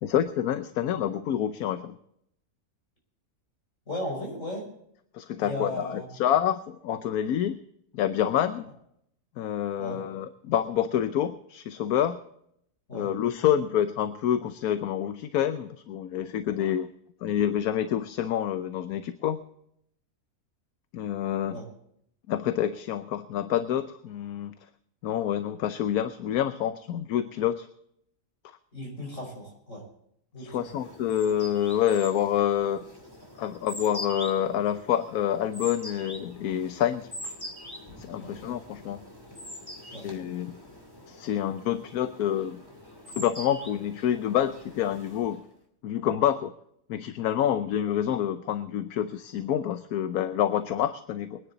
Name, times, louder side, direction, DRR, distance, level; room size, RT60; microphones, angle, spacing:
voice 1, 0.0-2.0 5.1-7.6 7.9-8.7 9.4-12.2 12.9-16.9 17.2-19.4 20.9-21.6 22.3-24.5 25.0-27.7 30.5-32.8 33.4-37.3 38.0-39.0 40.0-40.5 41.1-42.6 43.2-45.4 45.8-46.5 46.9-51.4, left 10 dB, 80° left, 11 dB, 1.2 m, -27 dB
voice 2, 3.9-4.7 5.4-6.2 9.8-10.0 12.9-13.1 21.5-21.7 28.7-29.8 30.3-30.7 38.2-38.3 39.9-40.1, left 1 dB, 55° left, 0 dB, 5.1 m, -36 dB
sound 1, 30.6-45.5, equal, 15° left, 2.7 m, -44 dB
22.5 x 10.0 x 4.0 m, 0.73 s
omnidirectional pair, 1.6 m